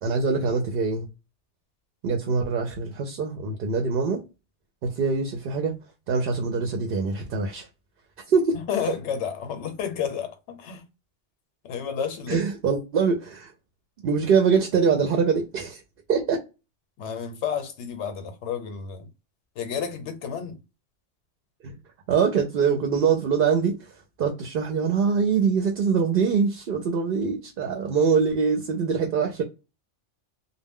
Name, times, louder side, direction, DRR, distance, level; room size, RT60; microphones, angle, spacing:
voice 1, 0.0-1.1 2.0-4.2 4.8-5.7 6.1-7.7 8.3-8.5 12.3-13.5 14.0-15.8 16.1-16.4 21.6-21.8 22.1-23.9 24.2-29.4, right 5 dB, 60° right, 0.6 m, -23 dB
voice 2, 8.7-10.9 11.6-12.4 17.0-19.1 19.5-20.6, left 7 dB, 80° left, 1.0 m, -31 dB
2.2 x 2.1 x 3.4 m
omnidirectional pair, 1.2 m